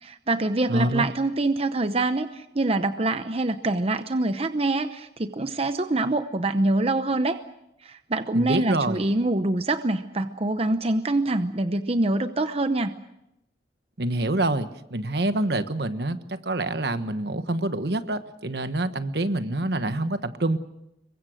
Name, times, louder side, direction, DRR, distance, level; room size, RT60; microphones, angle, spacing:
voice 1, 0.0-7.4 7.8-12.9, right 2 dB, 35° right, 9 dB, 0.8 m, -25 dB
voice 2, 0.7-1.0 8.3-9.0 14.0-20.6, right 2 dB, 65° right, 10 dB, 1.3 m, -26 dB
27.0 x 23.0 x 6.5 m, 0.84 s
head